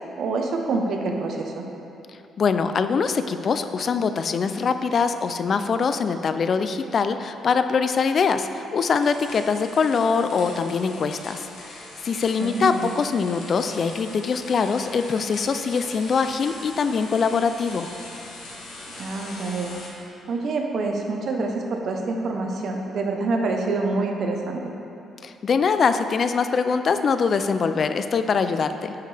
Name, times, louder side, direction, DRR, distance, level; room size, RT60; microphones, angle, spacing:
voice 1, 0.2-1.7 12.4-12.9 19.0-19.8 20.3-24.7, right 3 dB, 60° right, 2 dB, 0.8 m, -26 dB
voice 2, 2.4-17.9 25.2-28.9, left 5 dB, 50° left, 9 dB, 0.3 m, -23 dB
sound 1, 8.9-19.9, left 1 dB, 85° left, 1.4 m, -41 dB
9.0 x 5.5 x 3.4 m, 2.8 s
cardioid pair, 90°, 0 cm